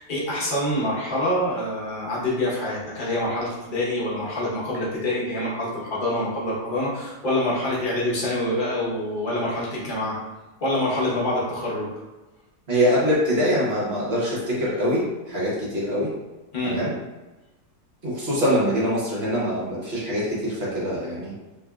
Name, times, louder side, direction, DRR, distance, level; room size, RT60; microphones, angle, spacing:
voice 1, 0.0-10.2 10.6-11.9 16.5-16.8, left 1 dB, 35° left, -6 dB, 1.0 m, -26 dB
voice 2, 12.7-16.1 16.6-16.9 18.0-21.3, equal, 45° right, -6 dB, 1.1 m, -24 dB
3.5 x 3.2 x 2.3 m, 1.1 s
omnidirectional pair, 1.7 m